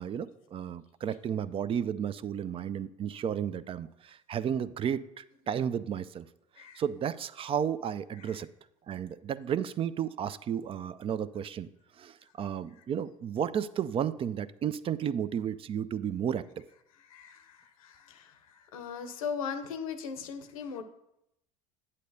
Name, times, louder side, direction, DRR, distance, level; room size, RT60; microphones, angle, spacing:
voice 1, 0.0-6.3 6.8-8.5 8.9-11.7 12.0-16.4, right 8 dB, 30° right, 16 dB, 0.3 m, -33 dB
voice 2, 17.1-20.8, left 6 dB, 85° left, 10 dB, 0.7 m, -39 dB
8.5 x 8.2 x 2.7 m, 0.81 s
hypercardioid pair, 80°, 18 cm